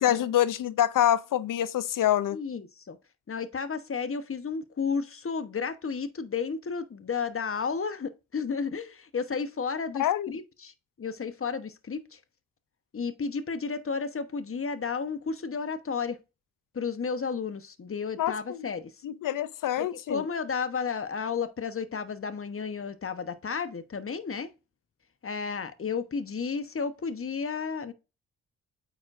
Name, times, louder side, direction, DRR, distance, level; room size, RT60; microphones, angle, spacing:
voice 1, 0.0-2.4 9.9-10.4 18.2-18.7 19.0-20.2, left 11 dB, 65° left, 0.6 m, -26 dB
voice 2, 2.3-3.0 3.3-12.2 12.9-16.2 16.7-18.9 19.8-24.5 25.2-27.9, left 5 dB, 40° left, 1.1 m, -32 dB
9.0 x 4.1 x 2.6 m
supercardioid pair, 50°, 34 cm